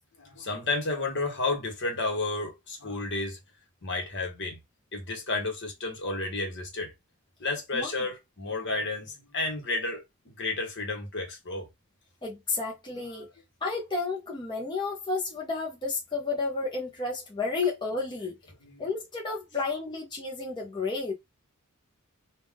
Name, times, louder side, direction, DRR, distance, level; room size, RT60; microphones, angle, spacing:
voice 1, 0.2-3.4 3.8-4.6 4.9-6.9 7.4-10.0 10.4-11.7 18.7-18.8, left 3 dB, 55° left, 1.2 m, -31 dB
voice 2, 12.2-13.3 13.6-18.4 18.8-21.1, left 3 dB, 20° left, 0.9 m, -31 dB
3.6 x 2.5 x 3.5 m
head